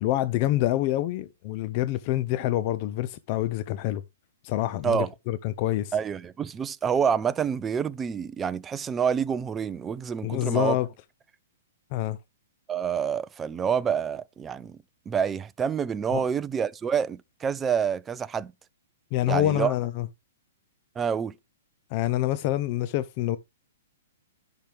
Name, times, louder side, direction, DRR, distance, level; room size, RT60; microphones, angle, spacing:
voice 1, 0.0-4.0 4.4-6.0 10.2-10.9 11.9-12.2 16.1-16.2 19.1-20.1 21.9-23.4, left 14 dB, 40° left, 0.5 m, -26 dB
voice 2, 5.9-10.8 12.7-14.8 15.1-18.5 19.3-19.7 21.0-21.3, right 7 dB, 15° right, 0.4 m, -27 dB
10.5 x 5.9 x 3.3 m
hypercardioid pair, 140°, 0 cm